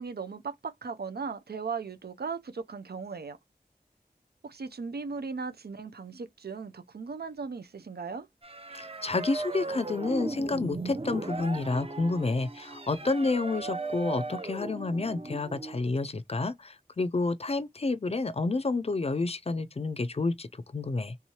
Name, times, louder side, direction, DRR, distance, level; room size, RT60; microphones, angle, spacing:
voice 1, 0.0-3.4 4.4-8.3, right 5 dB, 90° right, 0.5 m, -37 dB
sound 1, 8.4-15.8, right 3 dB, 35° right, 0.6 m, -37 dB
voice 2, 8.7-21.2, left 3 dB, 40° left, 0.4 m, -30 dB
3.5 x 3.1 x 2.8 m
wide cardioid pair, 45°, 16 cm